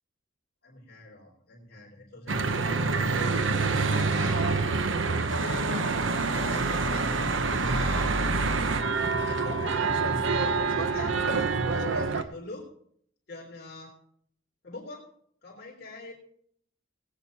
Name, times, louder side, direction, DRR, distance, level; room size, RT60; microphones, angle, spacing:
voice 1, 0.6-3.4 4.1-4.9 5.3-6.0 6.3-8.1 9.1-10.2 10.7-12.6 13.3-14.0 14.6-15.1 15.4-16.1, left 2 dB, 50° left, -4 dB, 3.6 m, -43 dB
Church bell / Traffic noise roadway noise, 2.3-12.2, right 3 dB, 75° right, 1.0 m, -26 dB
20.0 x 8.8 x 4.3 m, 0.63 s
head